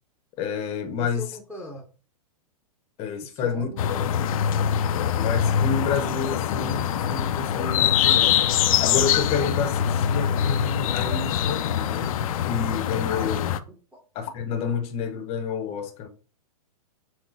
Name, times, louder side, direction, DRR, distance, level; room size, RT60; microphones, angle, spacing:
voice 1, 0.4-1.3 3.0-3.7 5.1-8.4 8.8-12.1 12.5-13.5 14.1-16.1, left 5 dB, 30° left, 0.8 m, -29 dB
voice 2, 1.0-1.9 3.2-4.4 9.1-9.3 13.2-13.4 13.7-14.0, left 1 dB, 5° right, 0.8 m, -41 dB
sound 1, 3.8-13.6, left 9 dB, 60° left, 0.5 m, -23 dB
6.2 x 2.1 x 3.9 m
hypercardioid pair, 130°, 20 cm